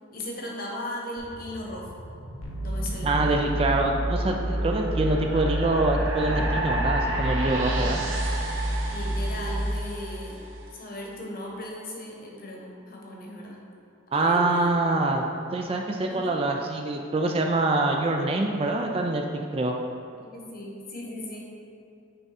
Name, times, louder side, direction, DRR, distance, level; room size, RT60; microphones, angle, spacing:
voice 1, 0.1-2.0 2.6-3.4 7.6-8.0 8.9-10.4 10.7-13.6 14.1-14.7 16.1-16.4 20.2-21.5, left 1 dB, 45° left, -2 dB, 1.1 m, -37 dB
sound 1, 1.2-10.5, right 1 dB, 70° right, 1.1 m, -34 dB
sound 2, 2.4-9.8, right 1 dB, 85° left, 0.9 m, -29 dB
voice 2, 3.0-8.0 14.1-15.2 15.5-19.8, right 2 dB, 25° right, 2 dB, 0.3 m, -25 dB
8.7 x 3.6 x 4.1 m, 2.7 s
head